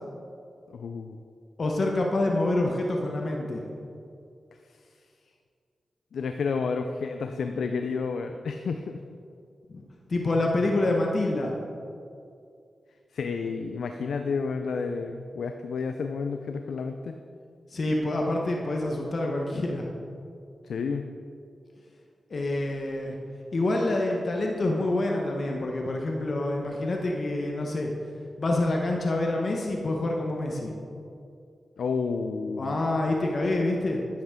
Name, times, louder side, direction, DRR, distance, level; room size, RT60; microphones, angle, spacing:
voice 1, 0.7-1.2 4.7-4.8 6.1-9.0 13.1-17.1 20.6-21.1 31.8-32.8, left 5 dB, 85° left, 6 dB, 0.4 m, -31 dB
voice 2, 1.6-3.7 9.7-9.8 10.1-11.5 17.7-19.9 22.3-23.2 23.5-27.9 28.4-30.7 32.6-34.0, left 2 dB, 60° left, 0 dB, 1.0 m, -27 dB
10.0 x 7.9 x 3.7 m, 2.4 s
cardioid pair, 45°, 0 cm